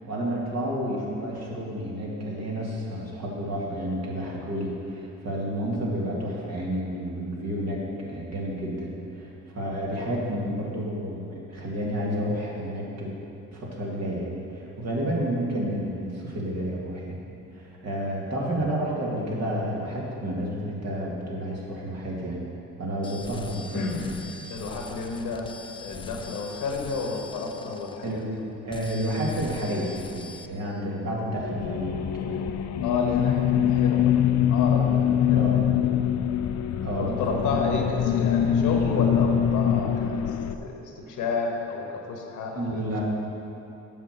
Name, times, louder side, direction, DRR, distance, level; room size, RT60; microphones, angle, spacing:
voice 1, 0.0-13.1 13.5-17.2 17.5-22.4 22.8-23.9 28.0-28.2 28.7-32.4 35.3-35.6 36.8-37.4 42.5-43.0, equal, 60° right, -4 dB, 2.2 m, -30 dB
sound 1, 23.0-28.4 28.7-30.5, left 3 dB, 15° left, 0.5 m, -43 dB
voice 2, 23.7-24.1 24.5-25.5 25.8-28.4 32.8-35.9 37.0-43.0, left 4 dB, 85° left, 1 dB, 1.3 m, -31 dB
sound 2, 31.3-40.6, left 9 dB, 65° left, 0.5 m, -24 dB
7.8 x 6.3 x 6.5 m, 3.0 s
cardioid pair, 90°, 30 cm